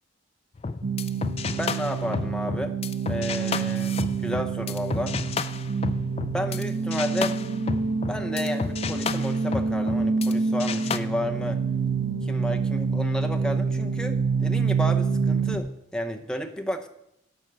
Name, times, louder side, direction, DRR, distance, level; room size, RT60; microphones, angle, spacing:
sound 1, 0.6-6.6 6.9-10.3 10.6-11.0, left 4 dB, 30° left, 0.3 m, -32 dB
sound 2, 0.8-15.6, right 5 dB, 90° right, 1.0 m, -27 dB
voice 1, 1.6-2.8 3.1-5.2 6.3-7.4 8.1-11.6 12.2-16.9, equal, 5° left, 4 dB, 0.7 m, -32 dB
11.5 x 5.4 x 7.6 m, 0.81 s
head